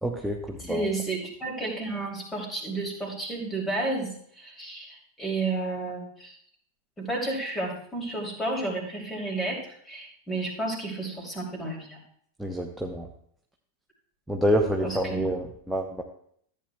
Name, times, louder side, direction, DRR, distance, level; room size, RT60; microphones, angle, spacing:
voice 1, 0.0-0.9 12.4-13.1 14.3-16.0, equal, 5° right, 1 dB, 0.8 m, -27 dB
voice 2, 0.6-6.4 7.0-12.0 14.8-15.3, right 2 dB, 15° left, 0 dB, 2.7 m, -32 dB
14.0 x 8.6 x 2.2 m, 0.65 s
figure-of-eight pair, 90°, 0 cm